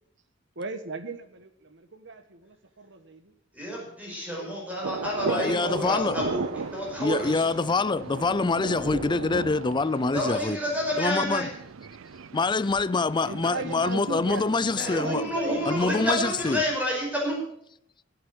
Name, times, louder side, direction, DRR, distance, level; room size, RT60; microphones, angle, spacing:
voice 1, 0.6-3.3 4.3-4.5 5.2-6.1 13.3-14.4 15.0-15.8, right 3 dB, 65° right, 1.5 m, -37 dB
voice 2, 3.5-6.4 6.7-7.4 10.1-11.5 14.7-17.4, equal, 10° right, 5.2 m, -29 dB
sound 1, 4.8-16.8, right 5 dB, 90° right, 0.5 m, -38 dB
voice 3, 5.3-6.2 7.0-10.6 11.0-11.5 12.3-15.3 15.7-16.6, left 3 dB, 25° left, 0.4 m, -25 dB
Thunder, 5.7-10.5, equal, 30° right, 1.7 m, -40 dB
15.0 x 8.7 x 7.8 m
head